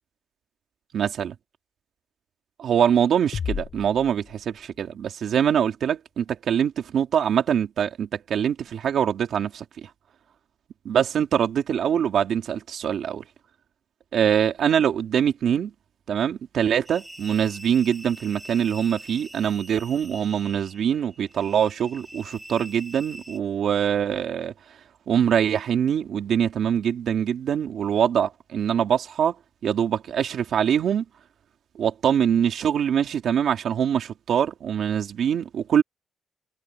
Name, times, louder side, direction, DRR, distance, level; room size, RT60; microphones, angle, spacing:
voice 1, 0.9-1.3 2.6-9.9 10.8-13.2 14.1-15.7 16.1-24.5 25.1-29.3 29.6-31.0 31.8-35.8, right 8 dB, 55° right, 2.6 m, -23 dB
sound 1, 3.3-5.1, left 7 dB, 45° left, 2.7 m, -34 dB
sound 2, 16.8-23.4, right 1 dB, 5° right, 8.0 m, -44 dB
cardioid pair, 165°, 0 cm